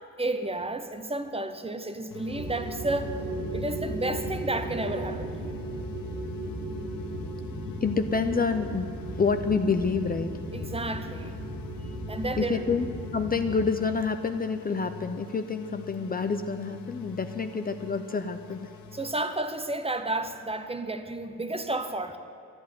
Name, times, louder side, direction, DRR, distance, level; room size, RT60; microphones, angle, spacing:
voice 1, 0.2-3.2 3.5-5.6 10.5-11.4 11.8-12.6 18.9-22.2, right 2 dB, 15° right, 8 dB, 0.8 m, -32 dB
sound 1, 2.1-19.1, left 7 dB, 90° left, 1.0 m, -46 dB
sound 2, 2.3-13.7, right 1 dB, 60° right, 2.1 m, -36 dB
voice 2, 7.8-10.3 10.6-10.7 12.4-12.9 13.1-18.7, left 5 dB, 25° left, 8 dB, 0.6 m, -28 dB
12.5 x 11.5 x 9.4 m, 2.5 s
cardioid pair, 145°, 34 cm